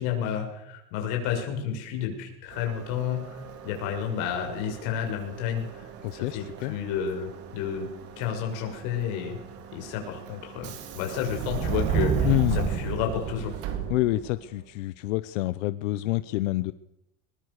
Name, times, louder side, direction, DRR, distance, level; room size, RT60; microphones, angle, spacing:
voice 1, 0.0-3.4 3.6-7.9 8.2-9.4 9.7-13.5, left 8 dB, 55° left, 3 dB, 7.0 m, -31 dB
Subway metro underground, 2.5-14.5, right 7 dB, 40° right, 3.4 m, -34 dB
voice 2, 6.0-6.7 12.2-12.6 13.9-16.7, left 18 dB, 85° left, 15 dB, 0.9 m, -27 dB
22.5 x 22.0 x 6.6 m, 0.85 s
cardioid pair, 175°, 37 cm